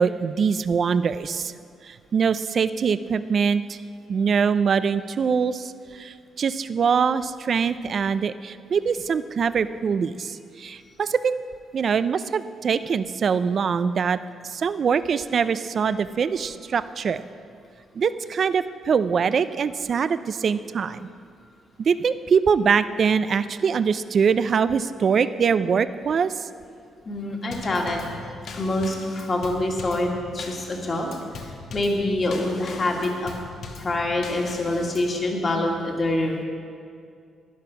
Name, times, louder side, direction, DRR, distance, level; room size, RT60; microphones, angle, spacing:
voice 1, 0.0-1.5 1.8-3.8 4.1-11.4 11.7-14.2 14.4-17.2 18.0-21.1 21.8-26.5, right 6 dB, 50° right, 14 dB, 0.4 m, -23 dB
voice 2, 27.1-28.1 28.5-33.3 33.8-36.4, left 1 dB, 35° left, 1 dB, 2.0 m, -26 dB
Drum kit / Snare drum / Bass drum, 27.5-35.2, left 4 dB, 65° left, 1.2 m, -40 dB
12.0 x 10.5 x 5.9 m, 2.3 s
cardioid pair, 110°, 0 cm